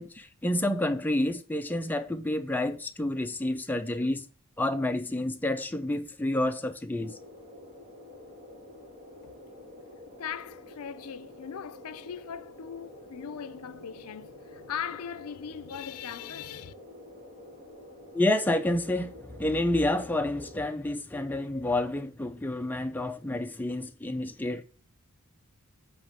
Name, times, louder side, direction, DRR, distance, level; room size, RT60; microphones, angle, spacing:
voice 1, 0.0-4.3 4.6-7.2 18.1-24.6, left 1 dB, 10° left, 0.5 m, -29 dB
sound 1, 7.0-20.7, left 1 dB, 30° right, 1.6 m, -48 dB
voice 2, 10.1-16.7, left 8 dB, 75° left, 0.5 m, -39 dB
8.5 x 3.2 x 5.1 m
head